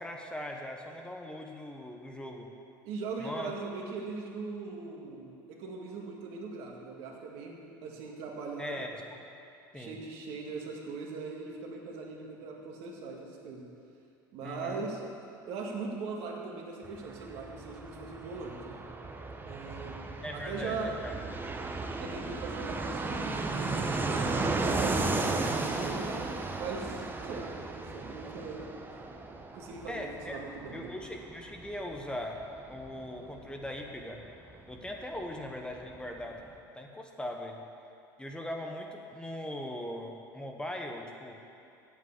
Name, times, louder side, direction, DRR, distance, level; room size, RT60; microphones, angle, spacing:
voice 1, 0.0-2.5 3.2-3.5 8.6-9.2 9.7-10.0 14.4-14.8 20.2-21.1 29.9-30.4 30.7-32.4 32.7-34.2 34.7-36.4 36.7-37.6 38.2-41.4, left 1 dB, 10° left, 2 dB, 1.1 m, -40 dB
voice 2, 2.8-8.8 9.7-13.7 14.3-15.0 15.5-18.8 19.5-20.0 20.3-21.1 22.0-26.1 26.5-28.8 29.5-30.9, right 4 dB, 65° right, -1 dB, 1.9 m, -40 dB
Fixed-wing aircraft airplane, 16.8-35.2 35.5-35.6 35.8-36.5, right 3 dB, 20° right, 1.0 m, -35 dB
8.1 x 7.4 x 8.4 m, 2.6 s
hypercardioid pair, 85°, 11 cm